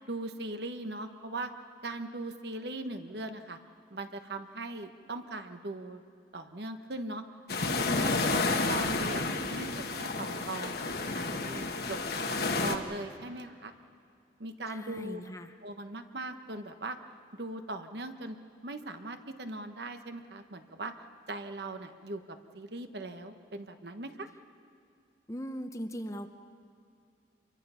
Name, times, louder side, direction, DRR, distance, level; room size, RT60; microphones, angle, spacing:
voice 1, 0.1-1.5 1.8-3.6 3.9-6.0 6.3-7.2 7.6-10.7 11.1-12.0 12.3-13.7 14.4-15.2 15.6-17.0 17.3-18.4 18.6-20.9 21.3-24.3, right 2 dB, 65° right, 7 dB, 1.2 m, -40 dB
sound 1, 7.5-12.8, left 3 dB, 55° left, 1.3 m, -31 dB
voice 2, 7.9-8.6 14.7-15.5 25.3-26.3, equal, 15° left, 7 dB, 0.8 m, -40 dB
27.5 x 23.0 x 5.7 m, 2.4 s
head